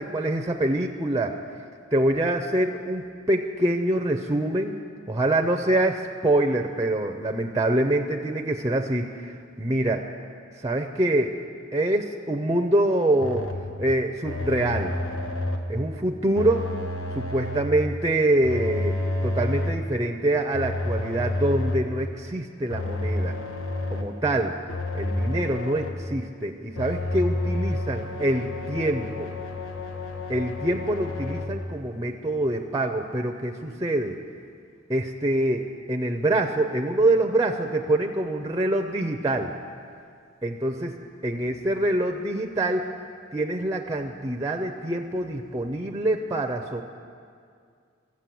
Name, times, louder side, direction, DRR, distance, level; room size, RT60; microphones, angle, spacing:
voice 1, 0.0-1.3 1.9-4.8 5.1-10.0 10.6-11.4 11.7-13.4 13.8-14.9 15.7-16.7 17.1-23.4 23.9-24.5 24.9-29.3 30.3-34.2 34.9-39.5 40.4-40.9 41.2-42.9 43.3-46.8, right 1 dB, 15° right, 4 dB, 0.5 m, -25 dB
sound 1, 13.2-13.7 14.2-15.8 16.3-17.8 18.4-19.9 20.5-22.0 22.7-24.2 24.7-26.1 26.7-31.5, left 2 dB, 80° left, 1.1 m, -30 dB
14.5 x 7.4 x 7.5 m, 2.2 s
head